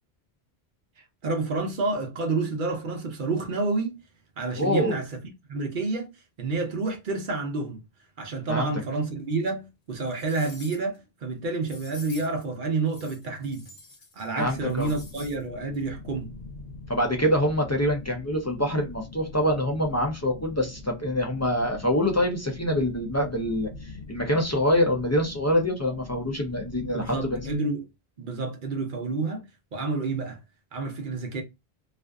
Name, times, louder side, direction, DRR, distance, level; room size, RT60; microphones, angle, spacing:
voice 1, 1.2-4.0 4.4-5.2 5.5-6.1 6.4-7.8 8.2-13.7 14.2-16.3 26.9-27.9 28.2-29.4 29.7-30.4 30.7-31.4, right 3 dB, 55° right, 0.8 m, -29 dB
voice 2, 4.6-5.0 8.5-8.8 14.3-14.9 16.9-27.5, equal, 25° left, 0.3 m, -25 dB
sound 1, 9.4-9.5 10.0-11.0 11.6-12.4 12.9-14.3 14.5-15.4 15.7-15.8, left 3 dB, 45° left, 0.7 m, -48 dB
sound 2, 14.4-27.6, left 3 dB, 80° left, 0.9 m, -43 dB
2.5 x 2.4 x 2.2 m
omnidirectional pair, 1.0 m